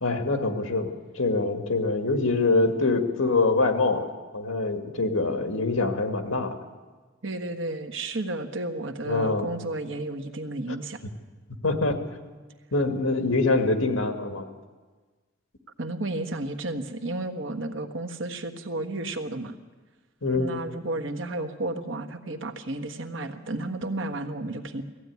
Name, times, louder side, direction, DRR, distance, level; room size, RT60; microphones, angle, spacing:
voice 1, 0.0-4.1 4.3-6.6 9.0-9.5 10.7-10.8 11.6-12.0 12.7-14.5 20.2-20.6, left 3 dB, 80° left, 6 dB, 2.0 m, -24 dB
voice 2, 7.2-11.0 15.8-19.5 20.3-24.8, right 2 dB, 65° right, 6 dB, 1.5 m, -32 dB
18.0 x 15.0 x 9.6 m, 1.4 s
head